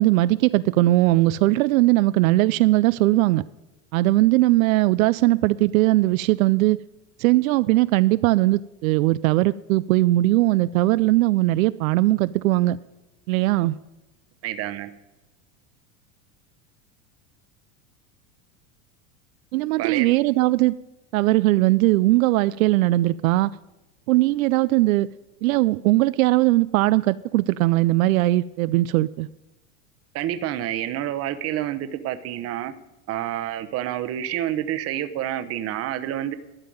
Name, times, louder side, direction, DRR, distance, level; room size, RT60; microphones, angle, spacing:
voice 1, 0.0-3.4 3.9-6.8 7.2-12.8 13.3-13.8 19.5-20.8 21.1-23.5 24.1-25.1 25.4-29.3, right 18 dB, 85° right, 15 dB, 0.5 m, -19 dB
voice 2, 14.4-14.9 19.8-20.1 30.1-32.7 33.1-36.4, right 12 dB, 35° right, 12 dB, 0.9 m, -28 dB
13.0 x 5.6 x 9.1 m, 1.0 s
supercardioid pair, 135°, 40 cm